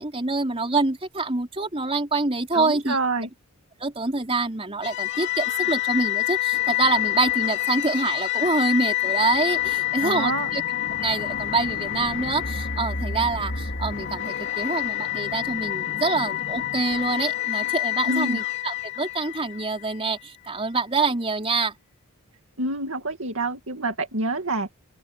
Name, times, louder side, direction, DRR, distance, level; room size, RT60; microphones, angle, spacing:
voice 1, 0.0-3.0 3.8-10.6 11.0-21.7, right 3 dB, 25° right, 4.0 m, -26 dB
voice 2, 2.5-3.3 10.0-10.5 18.1-18.4 22.6-24.7, right 2 dB, 65° right, 2.3 m, -27 dB
sound 1, 4.8-20.0, left 13 dB, 55° left, 2.6 m, -27 dB
open air
head